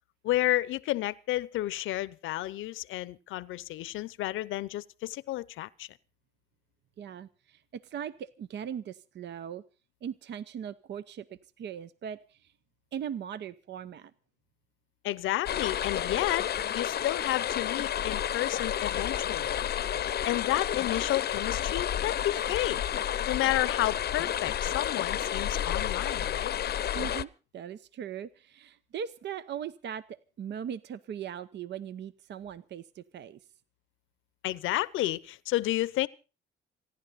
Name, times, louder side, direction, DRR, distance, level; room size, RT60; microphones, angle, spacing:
voice 1, 0.2-5.9 15.0-16.5 16.7-19.5 20.2-22.8 23.3-26.5 34.4-36.1, left 16 dB, 90° left, 0.7 m, -31 dB
voice 2, 7.0-9.6 10.0-12.5 12.9-14.1 26.9-33.4, right 8 dB, 60° right, 0.7 m, -39 dB
sound 1, 15.5-27.3, left 10 dB, 55° left, 0.7 m, -31 dB
27.5 x 11.0 x 4.1 m
cardioid pair, 90°, 20 cm